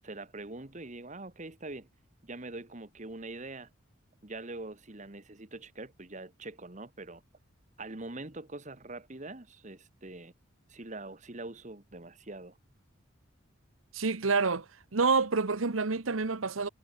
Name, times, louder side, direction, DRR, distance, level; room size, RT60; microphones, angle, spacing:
voice 1, 0.0-1.9 2.2-3.7 4.2-7.2 7.8-10.3 10.7-12.6, right 2 dB, 35° right, 1.6 m, -43 dB
voice 2, 13.9-14.6 14.9-16.7, right 4 dB, 90° right, 1.1 m, -27 dB
head